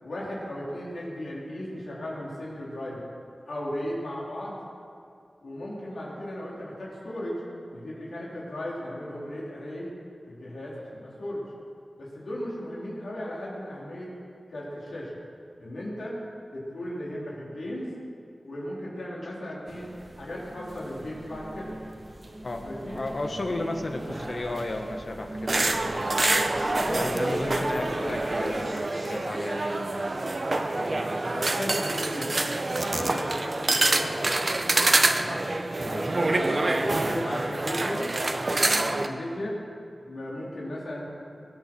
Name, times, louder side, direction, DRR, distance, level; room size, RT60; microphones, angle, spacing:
voice 1, 0.0-3.0 3.4-4.6 5.4-7.4 7.7-9.9 10.3-11.4 12.0-14.1 14.5-15.1 15.6-16.2 16.5-17.9 18.4-19.9 20.2-21.8 22.6-23.0 26.8-28.4 30.7-32.4 32.9-34.2 35.1-35.5 36.0-38.1 38.5-39.6 40.0-41.1, left 1 dB, 85° left, -6 dB, 4.0 m, -36 dB
sound 1, 19.7-28.7, right 1 dB, 35° right, 1.4 m, -39 dB
voice 2, 22.4-26.4 26.9-29.8 30.8-31.1 35.8-36.1, left 2 dB, 60° left, 3 dB, 1.6 m, -34 dB
sound 2, 25.5-39.1, right 2 dB, 50° right, 1.0 m, -26 dB
21.5 x 8.7 x 6.2 m, 2.4 s
cardioid pair, 50°, 0 cm